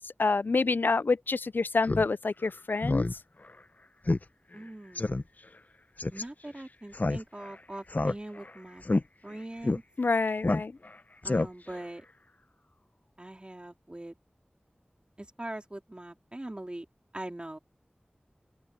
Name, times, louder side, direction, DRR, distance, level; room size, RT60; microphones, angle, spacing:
voice 1, 0.2-3.1 10.0-10.7, left 3 dB, 70° left, 0.4 m, -27 dB
Speech synthesizer, 1.8-2.1 2.4-2.5 2.8-3.1 3.5-3.6 4.1-4.2 4.5-4.6 5.0-5.2 6.0-6.2 6.9-7.5 7.9-8.5 8.8-9.0 9.6-9.8 10.4-10.9 11.2-11.8, left 2 dB, 50° left, 0.8 m, -28 dB
voice 2, 4.5-5.3 6.1-8.8 9.2-9.8 11.2-12.1 13.2-14.2 15.2-16.9 17.1-17.6, right 1 dB, 30° right, 4.0 m, -42 dB
open air
wide cardioid pair, 55°, 3 cm